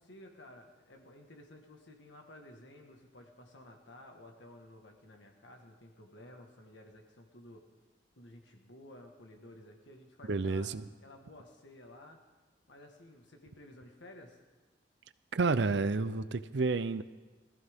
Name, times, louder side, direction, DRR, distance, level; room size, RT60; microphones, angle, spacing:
voice 1, 0.0-7.6 8.2-10.7 11.0-12.2 12.7-14.4, left 1 dB, 75° left, 1.6 m, -54 dB
voice 2, 10.3-10.8 15.3-17.0, right 3 dB, 70° right, 0.6 m, -30 dB
21.0 x 14.5 x 3.6 m
head